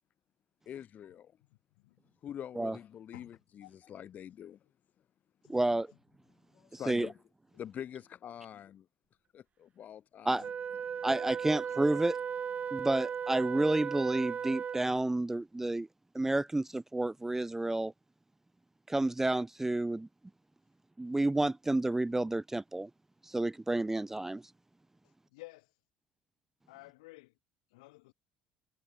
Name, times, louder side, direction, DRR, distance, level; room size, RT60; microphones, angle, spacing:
voice 1, 0.7-1.3 2.2-4.6 6.5-7.1 7.6-8.9 9.3-10.5 11.6-11.7, left 9 dB, 50° left, 2.7 m, -45 dB
voice 2, 5.5-5.9 6.7-7.1 10.2-10.5 11.0-12.2 12.7-15.9 16.1-17.9 18.9-20.1 21.0-22.9 23.2-24.4, right 2 dB, 10° right, 0.4 m, -30 dB
Wind instrument woodwind instrument, 10.4-15.0, right 7 dB, 40° right, 0.7 m, -36 dB
voice 3, 25.3-25.7 26.7-27.3 27.7-28.1, left 23 dB, 85° left, 2.7 m, -52 dB
supercardioid pair, 80°, 4 cm